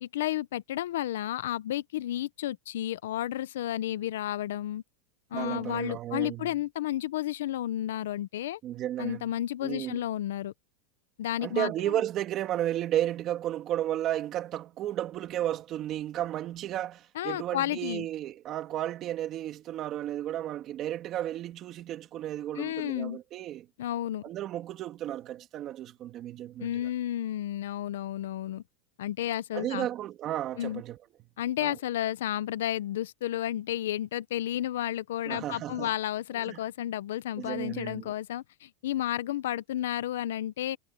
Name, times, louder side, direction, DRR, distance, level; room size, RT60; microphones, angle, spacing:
voice 1, 0.0-4.8 5.3-8.6 9.0-10.5 11.2-12.0 17.1-18.1 22.5-23.2 23.8-24.2 26.6-28.6 29.0-29.9 30.6-30.8 31.4-40.8, left 12 dB, 90° left, 0.6 m, -32 dB
voice 2, 5.3-6.5 8.6-9.3 9.6-10.0 11.4-23.7 24.2-26.9 29.5-31.0 31.6-31.8 35.3-35.9 36.3-36.6 37.4-38.1, right 12 dB, 35° right, 2.9 m, -33 dB
supercardioid pair, 150°, 0 cm